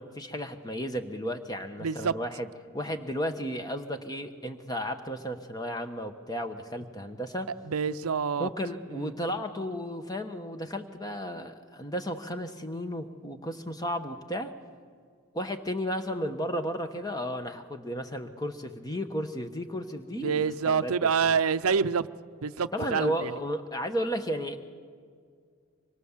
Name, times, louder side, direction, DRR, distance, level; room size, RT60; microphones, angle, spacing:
voice 1, 0.0-2.5 2.7-7.5 8.4-14.5 15.3-20.9 21.2-21.4 22.7-24.6, equal, 15° left, 1.1 m, -33 dB
voice 2, 1.8-2.1 7.7-8.5 8.9-9.1 20.2-22.1 22.4-23.3, right 6 dB, 85° right, 0.6 m, -27 dB
24.5 x 22.0 x 7.4 m
head